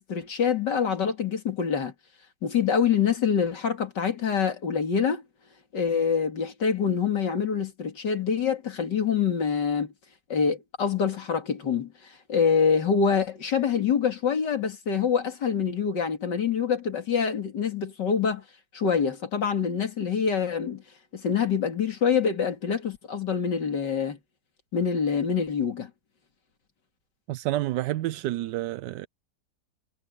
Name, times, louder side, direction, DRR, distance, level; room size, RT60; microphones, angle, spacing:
voice 1, 0.0-1.9 2.4-5.2 5.7-9.9 10.3-18.4 18.7-20.8 21.1-24.2 24.7-25.9, left 6 dB, 90° left, 3.0 m, -25 dB
voice 2, 27.3-29.1, right 15 dB, 85° right, 1.2 m, -29 dB
omnidirectional pair, 1.8 m